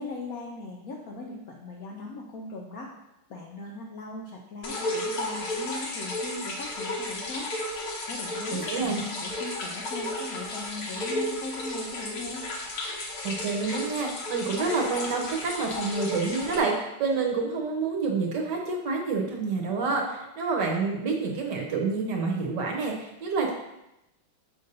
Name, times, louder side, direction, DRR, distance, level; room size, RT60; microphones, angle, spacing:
voice 1, 0.0-2.9 3.3-7.5 8.1-12.5, left 2 dB, 70° left, -1 dB, 0.8 m, -39 dB
sound 1, 4.6-16.6, left 1 dB, 55° left, 1.2 m, -33 dB
voice 2, 8.5-9.0 13.2-23.5, right 4 dB, 65° right, 0 dB, 1.3 m, -28 dB
6.6 x 2.7 x 5.2 m, 0.88 s
omnidirectional pair, 2.3 m